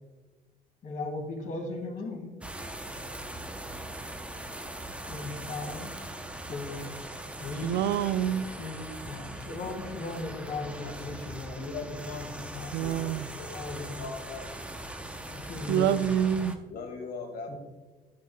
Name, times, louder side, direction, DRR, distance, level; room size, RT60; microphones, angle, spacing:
voice 1, 0.8-2.3 5.1-5.9 6.5-6.9 7.4-7.8 8.6-13.1 13.5-14.0 15.3-16.0 17.5-17.6, left 3 dB, 50° left, 3 dB, 2.0 m, -37 dB
sound 1, 2.4-16.6, right 1 dB, 5° right, 0.7 m, -41 dB
voice 2, 7.6-8.5 12.7-13.3 15.7-16.6, right 10 dB, 80° right, 14 dB, 0.4 m, -26 dB
voice 3, 11.6-14.7 16.7-17.6, left 4 dB, 70° left, 4 dB, 2.0 m, -41 dB
10.5 x 9.7 x 2.2 m, 1.2 s
cardioid pair, 110°, 17 cm